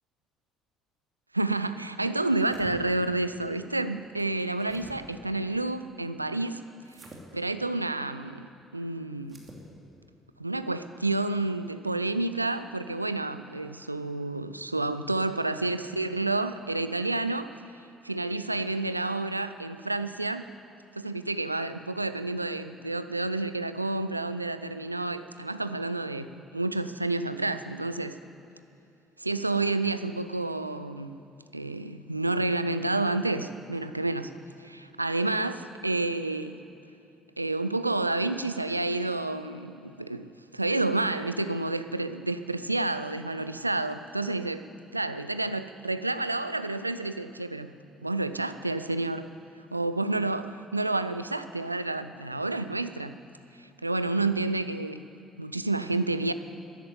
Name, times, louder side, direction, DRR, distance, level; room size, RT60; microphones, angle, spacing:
voice 1, 1.3-6.6 7.3-9.4 10.4-17.5 18.0-20.5 20.9-28.2 29.2-31.2 31.5-34.3 34.6-36.6 37.4-47.7 48.0-49.3 49.7-53.2 53.6-55.0 55.4-56.3, right 2 dB, 90° right, 12 dB, 0.3 m, -30 dB
sound 1, 2.2-2.7 4.2-5.0 6.8-7.2 9.2-9.6, right 2 dB, 30° right, 2.8 m, -49 dB
13.0 x 11.0 x 8.0 m, 2.6 s
figure-of-eight pair, 50°, 0 cm